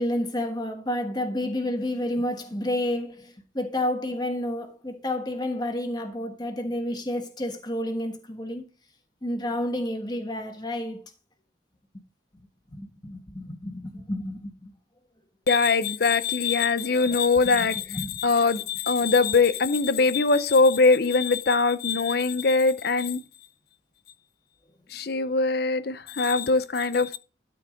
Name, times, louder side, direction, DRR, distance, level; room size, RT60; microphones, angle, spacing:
voice 1, 0.0-8.6 9.2-11.0 12.7-14.7 17.1-17.2 17.4-18.2, left 1 dB, 20° left, 1.4 m, -30 dB
voice 2, 15.5-17.9 18.2-23.2 24.9-27.2, left 4 dB, 55° left, 0.6 m, -22 dB
12.5 x 4.7 x 5.0 m
head